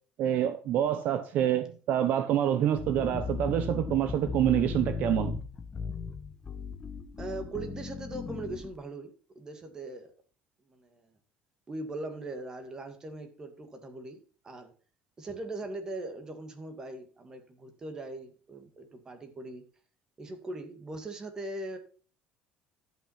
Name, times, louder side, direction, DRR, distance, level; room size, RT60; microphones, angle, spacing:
voice 1, 0.2-5.4, right 11 dB, 55° right, 0.7 m, -27 dB
sound 1, 2.8-8.8, left 5 dB, 20° left, 1.1 m, -36 dB
voice 2, 7.2-10.1 10.7-11.1 11.7-14.2 14.4-14.7 15.2-19.6 20.2-21.8, right 2 dB, 20° right, 1.9 m, -40 dB
12.0 x 5.7 x 5.7 m
cardioid pair, 165°, 3 cm